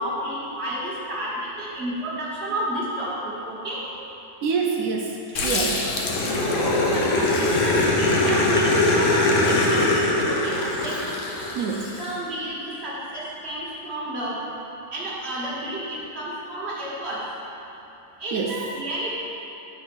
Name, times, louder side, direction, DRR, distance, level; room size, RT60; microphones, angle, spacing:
voice 1, 0.0-3.9 6.3-10.6 10.8-11.1 12.0-14.4 14.9-17.2 18.2-19.2, right 1 dB, 55° right, -6 dB, 1.7 m, -31 dB
voice 2, 4.4-5.9 11.5-11.9 18.3-18.5, right 5 dB, 90° right, 0 dB, 1.0 m, -26 dB
Growling, 5.4-12.0, left 2 dB, 70° left, 1.1 m, -22 dB
7.8 x 4.2 x 6.0 m, 2.9 s
omnidirectional pair, 1.4 m